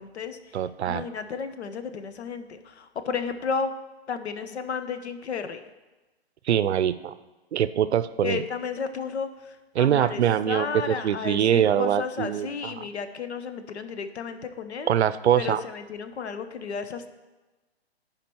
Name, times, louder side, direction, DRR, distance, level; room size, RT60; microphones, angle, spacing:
voice 1, 0.0-0.4 0.8-3.7 4.1-5.6 8.2-14.9 15.4-17.1, left 5 dB, 85° left, 10 dB, 0.9 m, -33 dB
voice 2, 0.5-1.0 6.5-7.1 7.5-8.4 9.7-12.8 14.9-15.6, right 10 dB, 85° right, 15 dB, 0.5 m, -23 dB
10.5 x 5.1 x 4.5 m, 1.2 s
hypercardioid pair, 175°, 32 cm